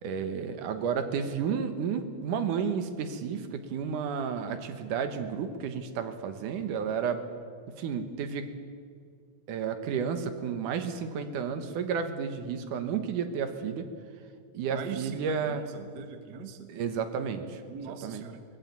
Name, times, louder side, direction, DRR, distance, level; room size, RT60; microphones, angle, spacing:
voice 1, 0.0-7.2 7.8-8.6 9.5-13.9 14.5-15.6 16.7-17.6 17.9-18.2, right 6 dB, 80° right, 9 dB, 2.8 m, -32 dB
voice 2, 14.7-16.7 17.7-18.4, right 6 dB, 50° right, 8 dB, 1.3 m, -41 dB
20.0 x 14.5 x 9.4 m, 2.2 s
omnidirectional pair, 3.6 m